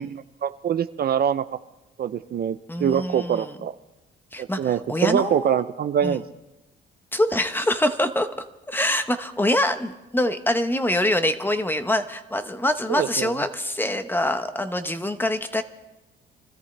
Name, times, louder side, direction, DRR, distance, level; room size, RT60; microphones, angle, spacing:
voice 1, 0.0-1.5 2.0-3.7 4.4-6.2 12.9-13.3, right 9 dB, 50° right, 12 dB, 0.5 m, -24 dB
voice 2, 2.7-3.6 4.3-5.7 6.0-6.2 7.1-8.3 8.7-15.6, left 1 dB, 10° left, 9 dB, 1.1 m, -25 dB
25.0 x 13.5 x 3.3 m, 1.0 s
cardioid pair, 90°, 20 cm